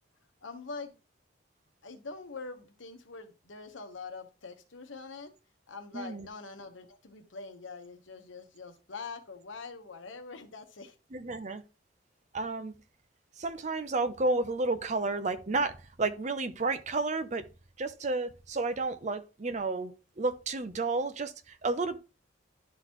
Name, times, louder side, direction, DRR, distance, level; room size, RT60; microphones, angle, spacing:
voice 1, 0.4-0.9 1.8-5.3 5.7-10.9, left 4 dB, 80° left, 1.1 m, -44 dB
voice 2, 5.9-6.3 11.1-11.6 12.3-12.7 13.4-17.4 17.8-22.0, right 3 dB, 35° right, 0.6 m, -31 dB
11.5 x 4.0 x 3.0 m
head